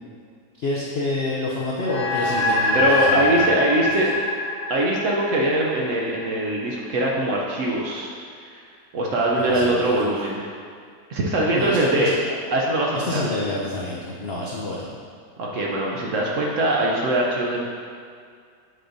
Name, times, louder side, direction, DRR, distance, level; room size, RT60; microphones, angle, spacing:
voice 1, 0.6-3.7 9.5-9.9 11.5-12.1 12.9-14.9, left 2 dB, 85° left, -4 dB, 0.5 m, -28 dB
sound 1, 1.8-6.5, left 2 dB, 35° left, 0.5 m, -24 dB
voice 2, 2.7-4.1 4.7-8.1 8.4-8.6 8.9-10.6 11.1-13.2 15.4-17.6, right 1 dB, 65° right, -2 dB, 0.8 m, -22 dB
7.8 x 5.0 x 2.6 m, 2.1 s
omnidirectional pair, 1.9 m